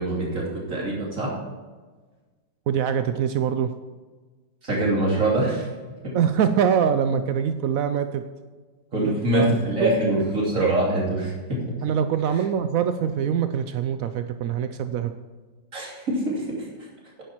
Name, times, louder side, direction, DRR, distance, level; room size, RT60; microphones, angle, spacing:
voice 1, 0.0-1.3 4.6-5.7 6.0-6.1 8.9-11.6 15.7-16.7, right 1 dB, 40° right, -4 dB, 3.3 m, -24 dB
voice 2, 2.7-3.7 6.1-8.2 8.9-9.5 9.8-10.2 11.8-15.1, right 8 dB, 85° right, 10 dB, 0.7 m, -24 dB
10.5 x 10.0 x 4.5 m, 1.4 s
omnidirectional pair, 2.1 m